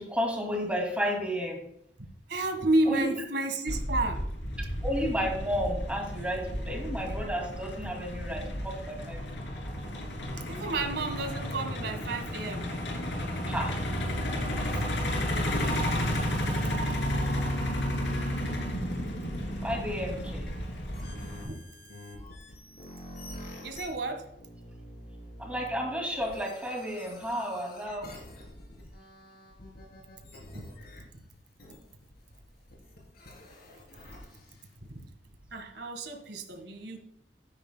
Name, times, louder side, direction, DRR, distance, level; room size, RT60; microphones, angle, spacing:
voice 1, 0.0-1.6 2.9-3.1 4.8-9.4 13.5-13.7 19.6-20.4 25.4-28.1, equal, 5° right, 1 dB, 2.4 m, -32 dB
voice 2, 2.3-4.2 10.5-12.7 14.7-14.9 16.7-16.8 21.1-21.6 23.6-24.3 30.5-30.6 31.0-31.1 34.9-35.1 35.5-37.0, right 2 dB, 65° right, 6 dB, 1.6 m, -31 dB
Truck, 3.7-21.4, equal, 75° left, 2.8 m, -32 dB
sound 1, 20.4-34.9, left 1 dB, 60° left, 3.4 m, -48 dB
13.0 x 9.6 x 2.2 m, 0.73 s
head